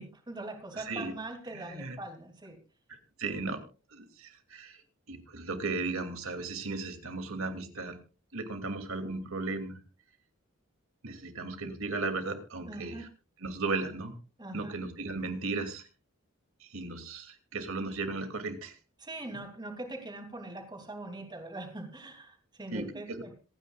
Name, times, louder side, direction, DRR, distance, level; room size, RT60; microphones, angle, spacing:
voice 1, 0.0-2.6 12.7-13.1 14.4-14.7 19.0-23.4, right 2 dB, 20° right, 4 dB, 2.9 m, -42 dB
voice 2, 0.7-1.1 1.5-2.0 2.9-3.6 3.9-4.8 5.1-8.0 8.3-9.8 11.0-13.0 13.4-14.1 14.5-15.9 16.6-18.8 22.7-23.2, right 3 dB, 85° right, 6 dB, 2.6 m, -36 dB
26.5 x 9.7 x 2.4 m, 0.34 s
head